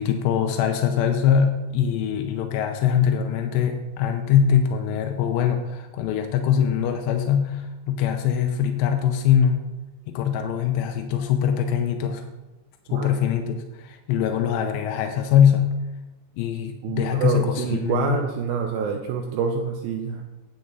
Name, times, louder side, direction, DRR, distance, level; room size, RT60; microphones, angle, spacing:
voice 1, 0.0-9.7 10.1-12.2 12.9-15.7 16.4-18.2, left 8 dB, 90° left, 5 dB, 2.9 m, -22 dB
voice 2, 12.9-13.2 16.8-20.2, right 6 dB, 80° right, 3 dB, 2.2 m, -27 dB
8.8 x 8.7 x 4.0 m, 1.1 s
omnidirectional pair, 4.9 m